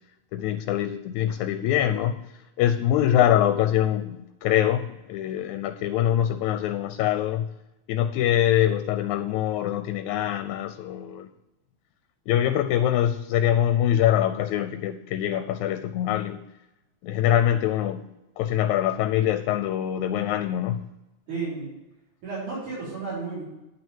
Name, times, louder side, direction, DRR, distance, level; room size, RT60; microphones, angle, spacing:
voice 1, 0.3-2.2 2.6-7.5 7.9-11.3 12.3-16.4 17.0-18.0 18.4-20.9, left 11 dB, 80° left, 10 dB, 1.9 m, -24 dB
voice 2, 21.3-21.7 22.2-23.4, right 4 dB, 90° right, -10 dB, 5.6 m, -32 dB
10.5 x 6.1 x 7.2 m, 0.97 s
omnidirectional pair, 3.4 m